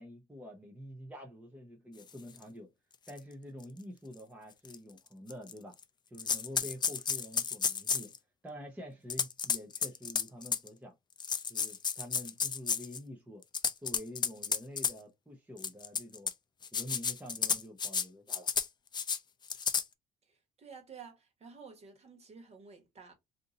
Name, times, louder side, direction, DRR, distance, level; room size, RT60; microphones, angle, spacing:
voice 1, 0.0-2.7 3.1-5.7 6.1-8.1 8.4-10.9 11.5-13.4 13.8-16.3 16.7-18.5, equal, 10° right, 0.7 m, -47 dB
sound 1, 2.4-2.5 3.1-3.2 3.6-3.7 4.6-4.8 5.3-5.8 6.2-8.2 9.1-10.7 11.2-13.0 13.4-14.9 15.6-16.3 16.6-18.0 18.3-18.7 18.9-19.2 19.5-19.8, left 6 dB, 25° left, 0.4 m, -32 dB
voice 2, 20.2-23.1, right 5 dB, 40° right, 1.4 m, -52 dB
2.7 x 2.6 x 3.8 m
cardioid pair, 110°, 17 cm